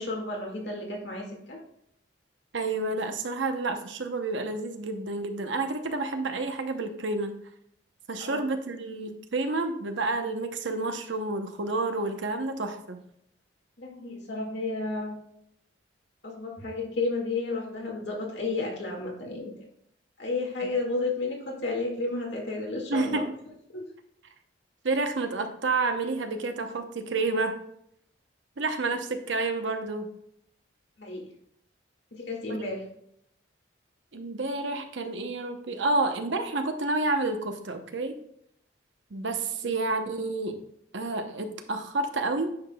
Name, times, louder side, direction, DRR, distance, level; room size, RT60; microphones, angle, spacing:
voice 1, 0.0-1.6 8.2-8.5 13.8-15.2 16.2-19.5 20.2-23.2 23.7-23.9 31.0-31.2 32.1-32.8, left 3 dB, 65° left, -1 dB, 2.0 m, -32 dB
voice 2, 2.5-7.4 8.1-13.0 22.9-23.3 24.8-27.6 28.6-30.1 34.1-38.2 39.1-40.6 40.9-42.5, right 3 dB, 75° right, 7 dB, 0.8 m, -29 dB
9.6 x 5.8 x 2.3 m, 0.72 s
head